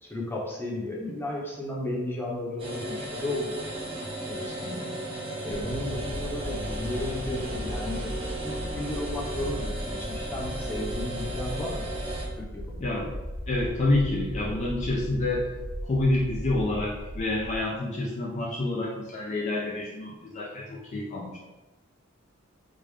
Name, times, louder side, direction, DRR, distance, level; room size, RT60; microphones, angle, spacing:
voice 1, 0.0-3.5 4.3-4.9 5.4-11.9 12.3-12.8, left 1 dB, 10° left, -4 dB, 0.8 m, -34 dB
sound 1, 2.6-12.3, right 1 dB, 30° right, 0.7 m, -35 dB
sound 2, 5.5-17.6, equal, 85° left, 0.5 m, -37 dB
voice 2, 12.8-13.1 13.5-15.5 15.8-21.4, left 2 dB, 35° left, -3 dB, 0.4 m, -28 dB
3.7 x 2.4 x 3.2 m, 1.1 s
head